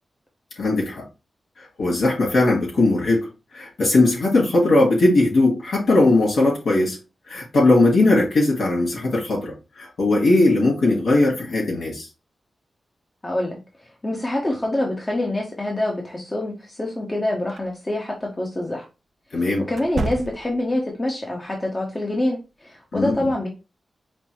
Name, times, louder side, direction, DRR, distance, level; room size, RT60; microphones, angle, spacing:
voice 1, 0.6-1.0 1.8-3.3 3.5-6.9 7.3-12.1 19.3-19.7 22.9-23.2, left 2 dB, 80° left, 1.6 m, -19 dB
voice 2, 13.2-18.8 19.3-23.5, left 1 dB, 25° left, 0.8 m, -26 dB
sound 1, 17.5-17.7 19.7-20.7, right 3 dB, 65° right, 0.3 m, -30 dB
5.1 x 2.0 x 3.0 m
cardioid pair, 75°, 0 cm